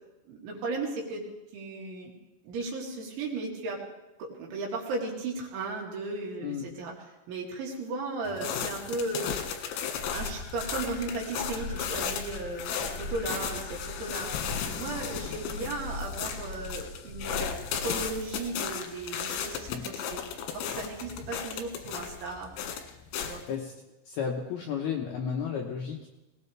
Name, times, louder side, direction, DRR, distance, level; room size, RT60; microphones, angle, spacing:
voice 1, 0.3-1.2 1.5-2.1 2.4-3.8 4.2-6.9 7.3-9.4 10.1-14.3 14.7-20.2 20.5-22.5 23.2-23.4, right 3 dB, 70° right, -1 dB, 4.7 m, -36 dB
voice 2, 6.4-6.7 19.7-19.9 23.1-23.7 24.1-26.1, left 7 dB, 70° left, 0 dB, 2.4 m, -33 dB
sound 1, 8.3-23.5, left 8 dB, 90° left, 4.1 m, -35 dB
sound 2, 9.9-18.4, left 2 dB, 55° right, 3.8 m, -41 dB
21.0 x 18.5 x 3.4 m, 1.0 s
omnidirectional pair, 5.8 m